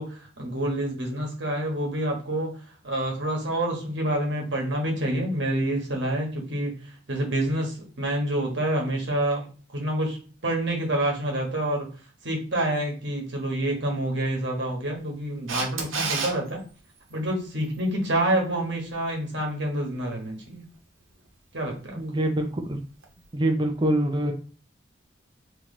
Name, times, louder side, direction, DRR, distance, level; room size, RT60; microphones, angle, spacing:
voice 1, 0.0-2.5 2.8-6.7 7.1-9.4 9.7-10.2 10.4-11.9 12.2-16.6 17.1-20.6 21.5-22.0, right 1 dB, 60° right, 0 dB, 1.3 m, -27 dB
Camera, 15.5-16.3 23.0-23.1, right 4 dB, 85° right, 1.0 m, -28 dB
voice 2, 22.0-22.8 23.3-24.3, right 1 dB, 20° right, 4 dB, 0.5 m, -25 dB
3.1 x 2.9 x 4.0 m, 0.38 s
head